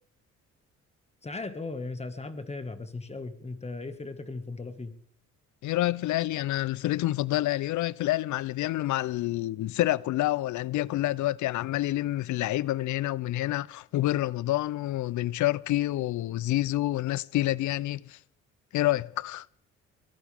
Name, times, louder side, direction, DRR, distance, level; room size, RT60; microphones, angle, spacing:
voice 1, 1.2-4.9, left 3 dB, 20° left, 1.7 m, -37 dB
voice 2, 5.6-18.2 18.7-19.5, left 15 dB, 75° left, 0.6 m, -28 dB
22.5 x 17.0 x 3.5 m
cardioid pair, 90°, 30 cm